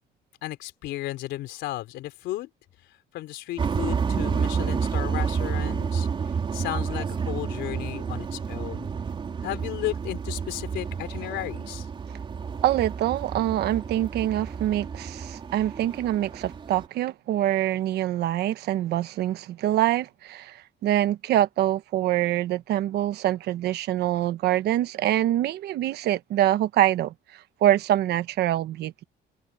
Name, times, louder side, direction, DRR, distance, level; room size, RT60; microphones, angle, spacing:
voice 1, 0.4-2.5 3.1-6.1 6.5-8.9 9.4-11.9, left 15 dB, 80° left, 3.8 m, -34 dB
sound 1, 3.6-16.9, right 6 dB, 30° right, 4.4 m, -30 dB
voice 2, 12.6-27.1 27.6-29.0, right 13 dB, 65° right, 1.2 m, -25 dB
cardioid pair, 170°, 18 cm